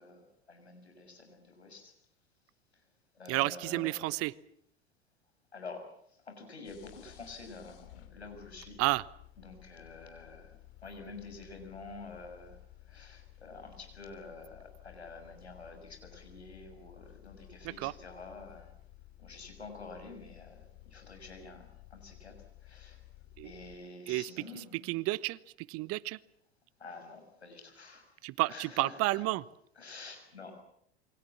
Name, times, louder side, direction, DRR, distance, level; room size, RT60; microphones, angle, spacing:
voice 1, 0.0-1.9 2.7-2.8 3.1-4.2 5.5-8.8 9.4-12.6 12.9-18.7 19.2-23.0 23.4-25.0 26.8-28.1 28.5-29.2 29.8-30.5, left 3 dB, 85° left, 5 dB, 6.6 m, -48 dB
voice 2, 3.3-4.3 8.8-9.0 17.6-17.9 23.4-23.5 24.1-26.2 28.2-29.4, right 20 dB, 45° right, 21 dB, 1.0 m, -32 dB
sound 1, 6.6-23.8, left 16 dB, 60° left, 2.6 m, -55 dB
28.5 x 23.5 x 7.4 m, 0.69 s
figure-of-eight pair, 80°, 32 cm